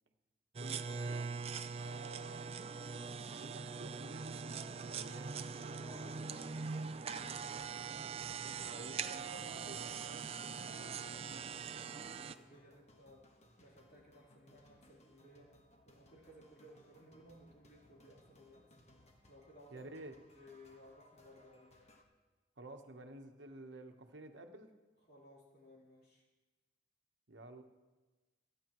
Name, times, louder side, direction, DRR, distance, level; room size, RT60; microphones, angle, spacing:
sound 1, 0.5-12.3, right 5 dB, 30° right, 0.4 m, -42 dB
voice 1, 0.6-1.3 1.8-2.6 3.3-6.2 8.5-9.9 19.7-20.1 22.6-24.7 27.3-27.6, right 2 dB, 65° right, 5 dB, 1.1 m, -52 dB
voice 2, 5.6-7.6 8.7-13.3 13.6-15.5 15.9-18.7 19.3-19.9 20.4-21.7 25.1-26.2, equal, 55° left, -6 dB, 3.6 m, -59 dB
sound 2, 7.4-22.0, left 1 dB, 35° left, 1.4 m, -66 dB
28.0 x 9.8 x 3.1 m, 1.2 s
head